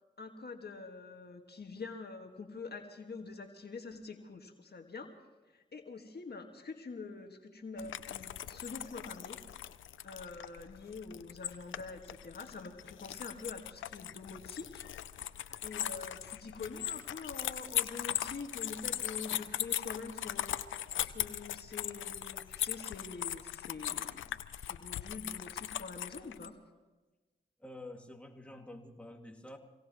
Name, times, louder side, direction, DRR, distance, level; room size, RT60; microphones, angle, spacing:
voice 1, 0.2-5.1 5.5-9.4 10.0-14.8 15.6-20.7 21.0-24.2 24.6-26.6, left 4 dB, 55° left, 4 dB, 1.8 m, -45 dB
sound 1, 7.8-26.5, left 11 dB, 85° left, 0.6 m, -39 dB
voice 2, 27.6-29.6, left 1 dB, 5° left, 2 dB, 2.3 m, -48 dB
26.0 x 17.5 x 3.1 m, 1.2 s
supercardioid pair, 40°, 20 cm